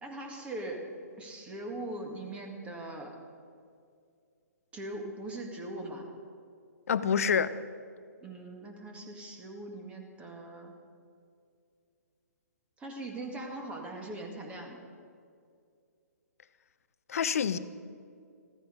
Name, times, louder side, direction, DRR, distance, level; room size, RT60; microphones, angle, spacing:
voice 1, 0.0-3.2 4.7-6.1 8.2-10.7 12.8-14.8, right 1 dB, 15° right, 3 dB, 1.9 m, -41 dB
voice 2, 6.9-7.5 17.1-17.6, left 7 dB, 55° left, 14 dB, 0.7 m, -27 dB
15.0 x 14.0 x 5.3 m, 2.3 s
figure-of-eight pair, 125°, 9 cm